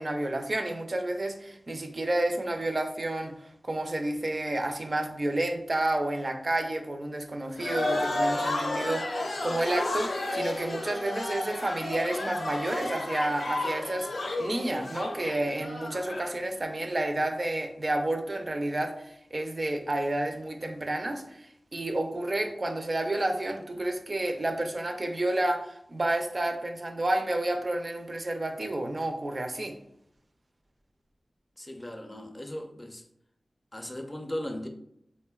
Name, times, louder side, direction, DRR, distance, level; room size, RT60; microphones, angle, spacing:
voice 1, 0.0-14.1 14.4-29.8, right 1 dB, 45° right, 0.4 m, -30 dB
sound 1, 7.6-16.3, left 2 dB, 80° left, 0.5 m, -32 dB
voice 2, 31.6-33.0 33.7-34.7, left 1 dB, 20° left, 0.4 m, -37 dB
3.8 x 2.1 x 2.2 m
wide cardioid pair, 55°, 0 cm